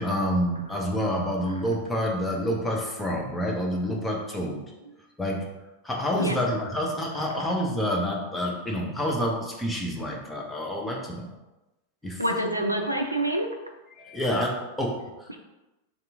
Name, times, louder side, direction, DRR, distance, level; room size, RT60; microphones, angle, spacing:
voice 1, 0.0-4.6 5.2-5.4 5.8-11.3 12.0-12.2 13.9-15.3, equal, 10° left, -2 dB, 0.8 m, -28 dB
voice 2, 12.2-13.5 15.3-15.4, right 1 dB, 85° right, 4 dB, 0.4 m, -26 dB
3.6 x 2.9 x 3.7 m, 1.0 s
figure-of-eight pair, 90°, 0 cm